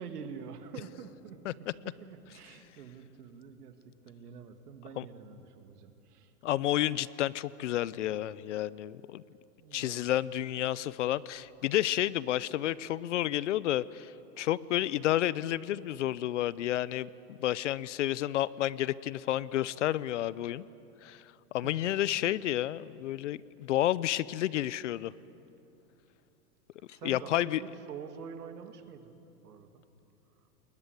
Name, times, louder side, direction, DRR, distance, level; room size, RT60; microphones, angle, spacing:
voice 1, 0.0-6.3 9.6-10.1 21.6-22.0 26.9-29.8 30.4-30.5, right 6 dB, 85° right, 8 dB, 2.4 m, -47 dB
voice 2, 6.4-9.2 9.7-14.1 14.4-20.7 21.0-21.2 21.5-25.1 27.0-27.6, left 13 dB, 55° left, 21 dB, 0.6 m, -30 dB
21.0 x 20.5 x 9.8 m, 2.8 s
supercardioid pair, 165°, 45 cm